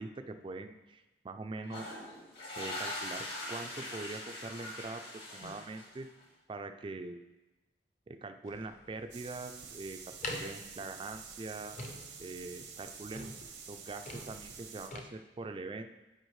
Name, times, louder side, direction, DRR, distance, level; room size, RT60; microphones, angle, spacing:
voice 1, 0.0-2.0 2.6-5.0 5.3-6.1 6.5-7.2 8.1-11.8 12.2-13.3 13.7-15.9, right 3 dB, 30° right, 8 dB, 0.3 m, -43 dB
sound 1, 1.6-6.2, left 1 dB, 60° left, 2.2 m, -42 dB
sound 2, 8.4-15.0, left 1 dB, 45° left, 0.7 m, -46 dB
sound 3, 9.1-14.9, right 6 dB, 90° right, 0.9 m, -49 dB
9.0 x 4.8 x 3.2 m, 1.0 s
head